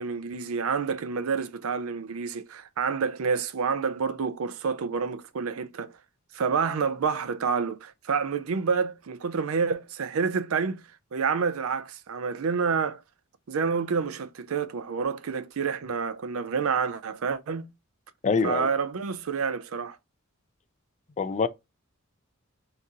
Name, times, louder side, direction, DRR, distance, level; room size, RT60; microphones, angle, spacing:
voice 1, 0.0-5.9 6.3-10.8 11.1-13.0 13.5-17.7 18.4-20.0, right 5 dB, 75° right, 0.5 m, -28 dB
voice 2, 18.2-18.7 21.2-21.5, left 5 dB, 35° left, 0.4 m, -24 dB
3.9 x 2.8 x 3.6 m
head